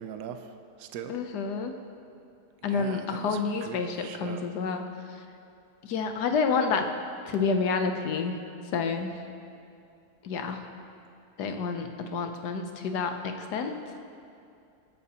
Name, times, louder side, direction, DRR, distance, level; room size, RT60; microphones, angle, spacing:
voice 1, 0.0-1.2 2.7-4.5, right 8 dB, 70° right, 8 dB, 1.0 m, -41 dB
voice 2, 1.1-1.7 2.6-4.8 5.8-6.9 7.3-8.3 8.7-9.1 10.2-10.6 11.4-13.7, left 5 dB, 90° left, 6 dB, 1.4 m, -29 dB
19.5 x 9.6 x 2.9 m, 2.5 s
omnidirectional pair, 1.7 m